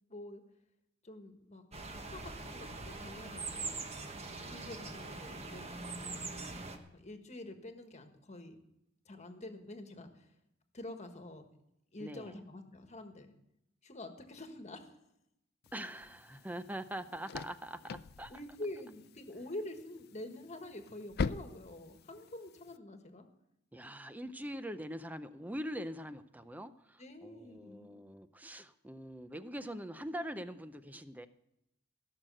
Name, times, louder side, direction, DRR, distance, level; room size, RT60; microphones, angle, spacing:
voice 1, 0.1-0.4 1.0-1.6 1.9-3.9 4.5-6.3 6.9-8.6 9.1-10.3 10.7-11.4 11.9-13.3 13.8-15.0 18.3-23.2 27.0-27.9, left 1 dB, 35° left, 6 dB, 1.5 m, -47 dB
sound 1, 1.7-6.8, right 3 dB, 35° right, 1.3 m, -42 dB
voice 2, 12.0-12.4 15.7-18.4 23.7-31.3, equal, 10° right, 12 dB, 0.5 m, -43 dB
sound 2, 15.6-22.8, left 5 dB, 50° left, 0.4 m, -43 dB
16.5 x 6.5 x 7.6 m, 0.82 s
head